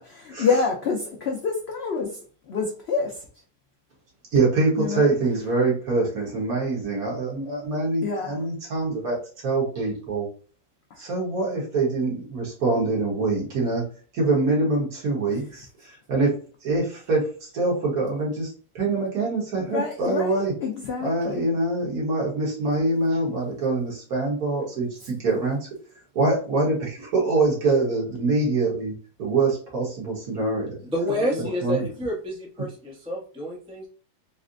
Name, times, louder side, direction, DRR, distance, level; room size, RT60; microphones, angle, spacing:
voice 1, 0.0-3.3 4.8-5.1 8.0-8.4 10.9-11.0 19.5-21.6 25.0-25.1 31.1-31.6, left 5 dB, 70° left, 1 dB, 0.6 m, -28 dB
voice 2, 4.3-10.3 11.0-13.8 14.1-20.5 21.0-25.6 26.1-30.7 31.6-31.9, right 3 dB, 65° right, -3 dB, 1.7 m, -24 dB
voice 3, 30.8-33.9, equal, 5° right, -2 dB, 0.6 m, -29 dB
4.1 x 2.1 x 2.5 m, 0.40 s
omnidirectional pair, 1.8 m